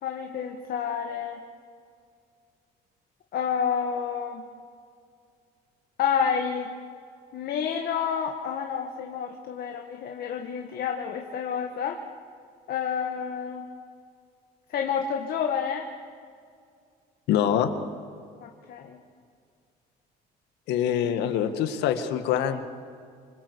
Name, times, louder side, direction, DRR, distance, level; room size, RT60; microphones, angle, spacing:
voice 1, 0.0-1.4 3.3-4.4 6.0-6.7 7.3-12.0 12.7-13.6 14.7-15.9 18.4-19.0, left 7 dB, 65° left, 2 dB, 1.9 m, -29 dB
voice 2, 17.3-17.7 20.7-22.6, left 9 dB, 85° left, 8 dB, 2.0 m, -24 dB
26.5 x 24.5 x 8.2 m, 2.3 s
cardioid pair, 110°, 17 cm